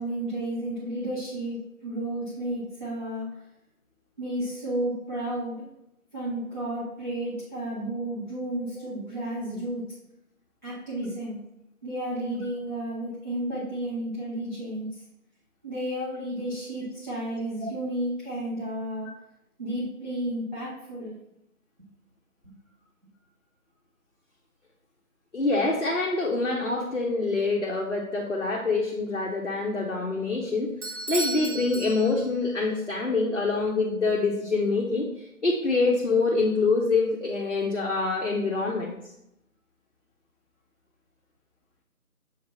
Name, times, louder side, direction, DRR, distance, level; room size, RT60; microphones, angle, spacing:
voice 1, 0.0-3.4 4.2-5.7 6.1-9.9 10.6-11.4 11.8-15.0 15.6-19.1 19.6-21.2, right 1 dB, 30° right, -11 dB, 1.4 m, -32 dB
voice 2, 25.3-39.0, left 3 dB, 50° left, -1 dB, 0.8 m, -26 dB
Bell / Doorbell, 30.8-32.5, right 2 dB, 50° right, 1.1 m, -34 dB
7.2 x 2.8 x 5.3 m, 0.85 s
figure-of-eight pair, 170°, 45 cm